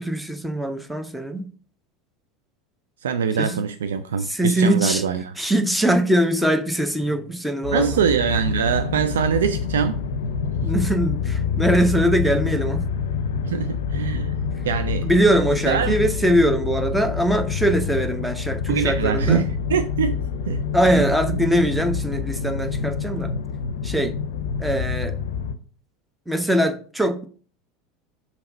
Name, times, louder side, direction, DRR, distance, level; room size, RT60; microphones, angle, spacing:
voice 1, 0.0-1.5 3.4-3.6 4.2-5.0 5.4-8.0 10.6-12.9 15.0-19.5 20.7-23.4 23.8-24.2 24.6-25.2 26.3-27.3, right 1 dB, 5° right, 0.8 m, -22 dB
voice 2, 3.0-5.3 7.7-10.0 10.6-10.7 13.4-14.3 14.6-15.1 15.7-16.0 18.7-20.6 20.9-21.0, right 7 dB, 70° right, 0.4 m, -23 dB
sound 1, 7.6-25.6, left 6 dB, 65° left, 0.5 m, -27 dB
5.6 x 4.0 x 5.2 m
figure-of-eight pair, 75°, 0 cm